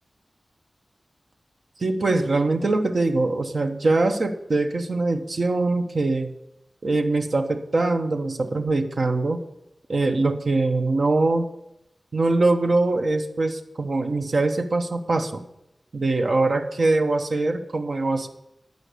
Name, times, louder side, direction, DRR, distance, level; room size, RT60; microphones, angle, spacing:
voice 1, 1.8-6.3 6.8-9.4 9.9-11.5 12.1-15.4 15.9-18.3, right 2 dB, 65° right, 6 dB, 0.9 m, -23 dB
11.0 x 5.1 x 8.2 m, 0.84 s
wide cardioid pair, 90°, 0 cm